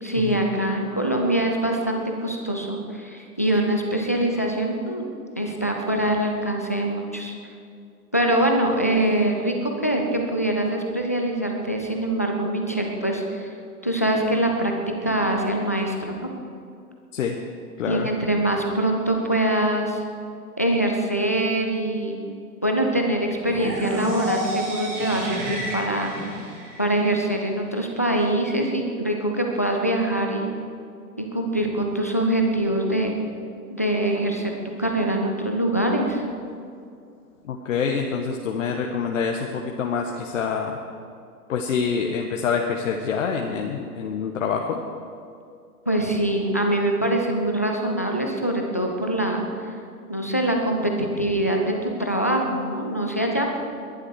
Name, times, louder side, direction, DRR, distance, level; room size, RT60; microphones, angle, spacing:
voice 1, 0.0-5.1 5.4-7.3 8.1-13.5 13.8-14.7 15.0-16.3 17.9-20.0 20.6-22.2 22.6-26.1 26.8-30.5 31.3-33.2 33.7-34.5 34.8-36.2 45.9-49.7 50.1-53.6, right 1 dB, 10° left, 2 dB, 0.3 m, -24 dB
voice 2, 17.8-18.1 37.5-40.8 41.5-44.8, left 6 dB, 50° left, 2 dB, 1.4 m, -26 dB
sound 1, 23.4-27.4, right 1 dB, 50° right, 4.1 m, -30 dB
21.0 x 11.5 x 4.7 m, 2.4 s
figure-of-eight pair, 110°, 47 cm